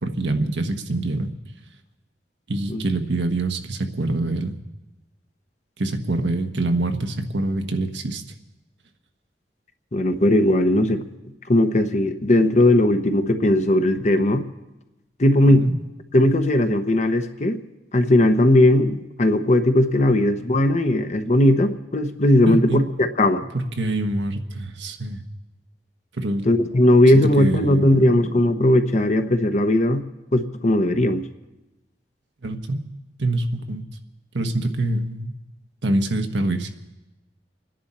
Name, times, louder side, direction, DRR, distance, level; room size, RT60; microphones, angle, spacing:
voice 1, 0.0-1.3 2.5-4.6 5.8-8.2 15.5-15.7 22.5-22.9 23.5-25.2 26.2-26.4 27.1-28.1 32.4-32.8 33.2-33.8 34.3-35.3 35.8-36.7, right 2 dB, 80° right, 5 dB, 1.2 m, -25 dB
voice 2, 9.9-11.0 11.5-14.4 15.2-15.7 16.1-17.6 17.9-23.4 26.4-30.0 30.3-31.2, left 1 dB, 40° left, 8 dB, 0.9 m, -18 dB
29.5 x 10.5 x 4.3 m, 1.0 s
head